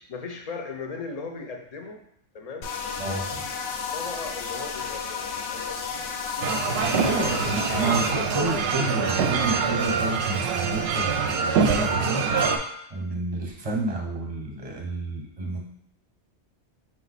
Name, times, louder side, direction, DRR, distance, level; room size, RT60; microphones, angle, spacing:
voice 1, 0.0-2.0 2.3-2.7 3.9-6.0 6.4-7.0, left 4 dB, 40° left, 3 dB, 0.6 m, -38 dB
sound 1, 2.6-8.1, left 6 dB, 80° left, 0.9 m, -32 dB
voice 2, 3.0-3.4 7.0-12.3 12.9-15.6, right 2 dB, 35° right, 0 dB, 0.8 m, -30 dB
sound 2, 6.4-12.6, right 5 dB, 70° right, 0.8 m, -24 dB
5.2 x 2.5 x 4.0 m, 0.76 s
omnidirectional pair, 1.2 m